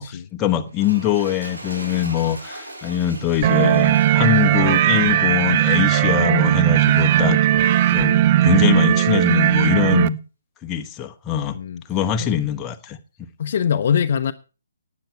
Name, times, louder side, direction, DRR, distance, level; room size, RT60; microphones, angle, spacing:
voice 1, 0.0-7.5 7.9-10.2 10.6-11.6 11.9-13.0, left 10 dB, 15° left, 1.2 m, -23 dB
Toilet flush, 0.7-6.2 6.8-7.0, right 1 dB, 85° right, 6.0 m, -40 dB
sound 1, 3.4-10.1, right 12 dB, 35° right, 0.6 m, -17 dB
voice 2, 11.5-11.8 12.2-12.3 13.4-14.3, left 8 dB, 50° left, 0.8 m, -22 dB
12.0 x 9.7 x 4.6 m
figure-of-eight pair, 145°, 0 cm